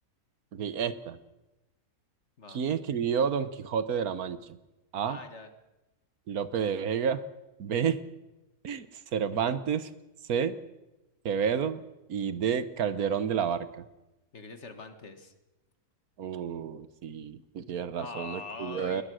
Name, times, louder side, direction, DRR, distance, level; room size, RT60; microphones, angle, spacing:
voice 1, 0.5-1.2 2.5-4.4 4.9-5.2 6.3-7.2 7.6-8.0 8.6-8.9 9.1-9.9 10.3-10.6 11.2-11.8 12.1-13.7 16.2-19.0, right 7 dB, 75° right, 14 dB, 1.5 m, -30 dB
voice 2, 5.1-5.5 14.3-15.3 18.0-19.0, left 3 dB, 50° left, 8 dB, 1.9 m, -42 dB
21.0 x 20.5 x 6.4 m, 1.0 s
omnidirectional pair, 1.5 m